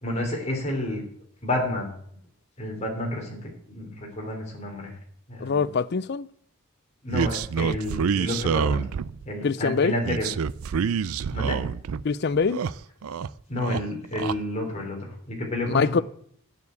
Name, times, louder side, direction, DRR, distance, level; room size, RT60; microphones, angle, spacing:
voice 1, 0.0-1.0 1.4-1.9 2.6-5.0 5.3-5.7 7.0-8.8 9.2-10.3 11.3-11.6 13.5-16.0, left 1 dB, 30° left, 3.4 m, -30 dB
voice 2, 5.4-6.3 9.4-10.0 12.0-12.6 15.7-16.0, left 5 dB, 50° left, 0.4 m, -23 dB
sound 1, 7.1-9.3 10.0-12.0 12.3-13.3 13.6-14.4, right 6 dB, 80° right, 0.4 m, -27 dB
9.6 x 7.1 x 8.0 m
head